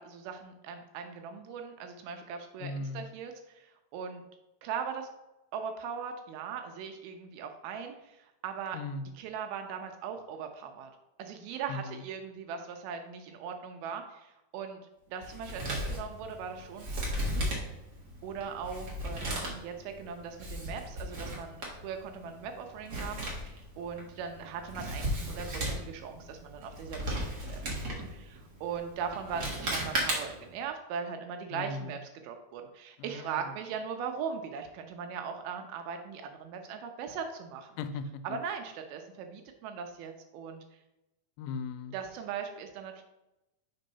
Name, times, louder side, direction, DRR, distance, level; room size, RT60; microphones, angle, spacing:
voice 1, 0.0-4.2 4.6-5.1 5.5-8.8 9.2-10.9 11.2-14.8 15.1-16.9 17.1-17.6 18.2-37.7 38.2-40.6 41.9-43.0, right 6 dB, 85° right, 5 dB, 2.5 m, -39 dB
voice 2, 2.6-3.1 8.7-9.1 11.7-12.0 31.5-32.0 33.0-33.5 37.8-38.4 41.4-42.0, left 3 dB, 85° left, 10 dB, 2.3 m, -38 dB
Male speech man speaking, 15.2-30.5, equal, 60° right, 1.1 m, -36 dB
5.4 x 3.9 x 5.3 m, 0.96 s
omnidirectional pair, 4.4 m